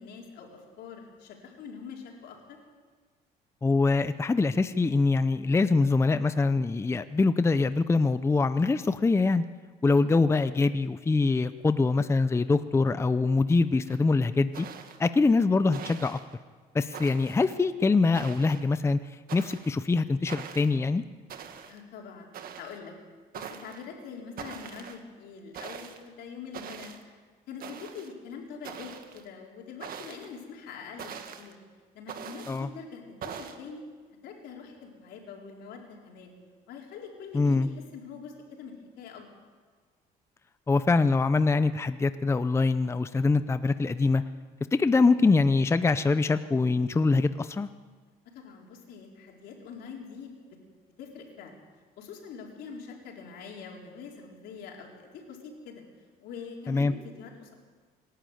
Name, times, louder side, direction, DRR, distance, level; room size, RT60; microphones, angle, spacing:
voice 1, 0.0-2.6 9.8-10.1 21.7-22.3 22.5-22.9 23.3-27.2 27.5-31.5 31.9-33.8 34.2-36.3 36.7-39.3 48.3-50.3 51.0-51.6 52.0-55.8 56.2-57.5, left 6 dB, 80° left, 0 dB, 4.5 m, -44 dB
voice 2, 3.6-9.4 9.8-14.7 15.0-16.2 16.7-19.0 19.3-21.0 32.5-32.7 37.3-37.7 40.7-44.2 44.8-47.7 56.7-56.9, left 3 dB, 15° left, 12 dB, 0.6 m, -24 dB
sound 1, 13.9-14.0 14.5-15.1 15.7-16.2 16.9-17.5 18.1-18.7 19.3-19.7 20.3-20.8 21.3-21.8 22.3-22.8 23.3-23.8 24.4-25.0 25.5-26.0 26.5-27.0 27.6-28.1 28.6-29.3 29.8-30.3 31.0-31.5 32.1-32.6 33.2-33.6, right 7 dB, 60° right, 1.8 m, -42 dB
25.5 x 11.5 x 9.2 m, 1.5 s
cardioid pair, 110°, 17 cm